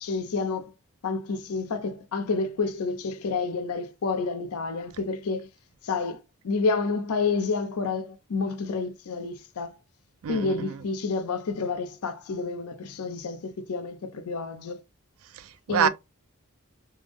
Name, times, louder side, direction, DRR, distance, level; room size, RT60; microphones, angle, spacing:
voice 1, 0.0-0.7 1.0-5.5 5.8-9.8 10.3-14.8 15.7-15.9, left 4 dB, 75° left, 0.5 m, -29 dB
voice 2, 10.2-10.8 15.3-15.9, right 8 dB, 70° right, 0.4 m, -27 dB
3.3 x 2.0 x 3.3 m
head